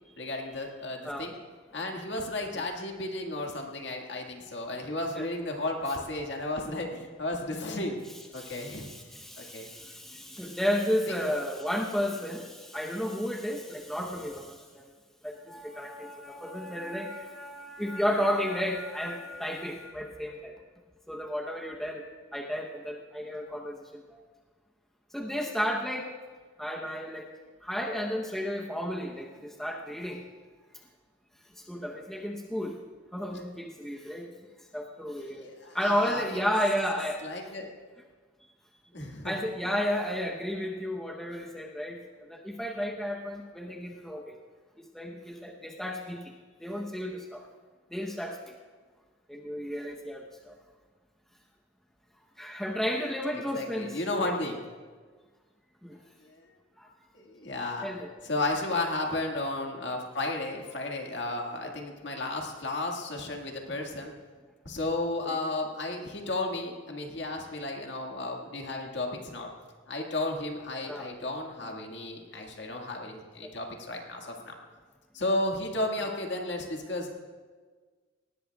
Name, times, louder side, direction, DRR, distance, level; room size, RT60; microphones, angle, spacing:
voice 1, 0.2-1.3 1.7-8.0 8.3-8.9 9.4-9.7 35.3-36.5 37.2-37.7 38.9-39.3 53.5-54.6 56.2-56.4 57.1-57.9 58.2-64.1 64.7-69.5 69.9-74.6 75.1-77.1, left 2 dB, 60° left, 1 dB, 1.9 m, -33 dB
voice 2, 8.3-14.8 15.2-20.5 21.1-22.0 22.3-24.0 25.1-26.1 26.6-27.3 27.6-30.2 31.6-32.8 33.1-34.3 34.7-37.2 39.2-44.4 44.8-46.2 46.6-47.4 47.9-48.5 49.3-50.5 52.4-54.3 55.8-55.9 56.8-56.9 57.8-58.1 65.2-65.4 70.9-71.1 73.4-73.5 76.0-76.2, equal, ahead, -1 dB, 0.8 m, -33 dB
19.0 x 17.5 x 2.3 m, 1.5 s
head